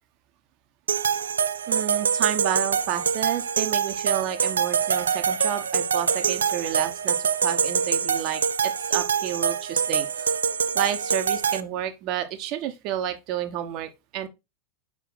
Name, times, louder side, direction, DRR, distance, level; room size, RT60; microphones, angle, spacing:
sound 1, 0.9-11.6, right 7 dB, 70° right, 0.5 m, -25 dB
voice 1, 1.7-10.4 10.7-14.3, right 11 dB, 40° right, 1.1 m, -30 dB
6.2 x 5.0 x 4.0 m
figure-of-eight pair, 90°, 0 cm